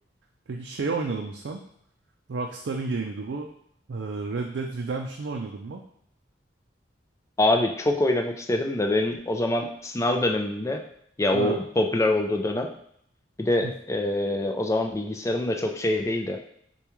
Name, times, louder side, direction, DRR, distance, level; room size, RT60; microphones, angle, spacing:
voice 1, 0.5-1.6 2.3-3.5 3.9-5.8 11.3-11.6 13.6-13.7, right 4 dB, 75° right, 2 dB, 0.4 m, -31 dB
voice 2, 7.4-10.8 11.2-12.7 13.4-16.4, left 1 dB, 15° left, 3 dB, 0.4 m, -25 dB
6.7 x 2.3 x 3.0 m, 0.70 s
head